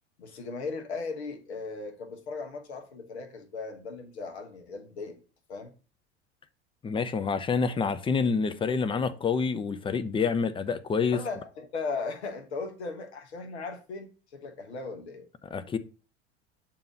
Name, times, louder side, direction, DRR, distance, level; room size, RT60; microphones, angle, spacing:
voice 1, 0.2-5.2 5.5-5.7 11.1-15.3, left 4 dB, 70° left, 1.2 m, -37 dB
voice 2, 6.8-11.2 15.5-15.8, left 5 dB, 15° left, 0.5 m, -27 dB
7.0 x 2.9 x 5.9 m
figure-of-eight pair, 75°, 34 cm